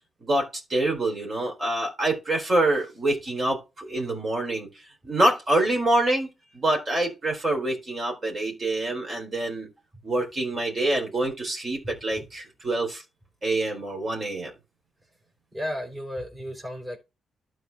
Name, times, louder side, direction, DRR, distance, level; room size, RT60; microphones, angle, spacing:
voice 1, 0.2-4.7 5.0-9.7 10.0-13.0 13.4-14.5, right 1 dB, 40° right, 4.0 m, -26 dB
voice 2, 15.5-17.0, equal, 20° right, 3.4 m, -33 dB
12.5 x 4.8 x 3.5 m
cardioid pair, 90°, 0 cm